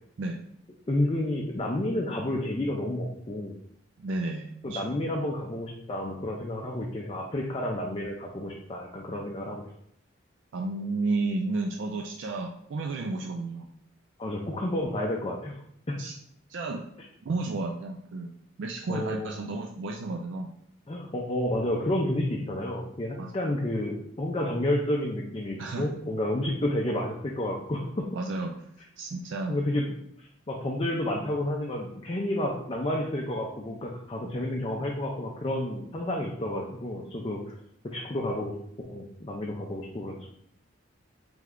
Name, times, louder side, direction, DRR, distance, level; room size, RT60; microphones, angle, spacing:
voice 1, 0.9-3.5 4.6-9.6 14.2-15.5 15.9-16.0 18.9-19.3 20.9-28.1 29.5-37.5 37.9-40.3, left 1 dB, 25° left, -1 dB, 0.4 m, -30 dB
voice 2, 4.0-4.8 10.5-13.7 16.0-16.1 16.5-16.8 17.2-20.5 23.2-23.3 25.6-25.9 28.1-28.6 29.0-29.6 34.2-34.3, right 3 dB, 60° right, 2 dB, 0.3 m, -32 dB
3.4 x 3.2 x 3.6 m, 0.71 s
head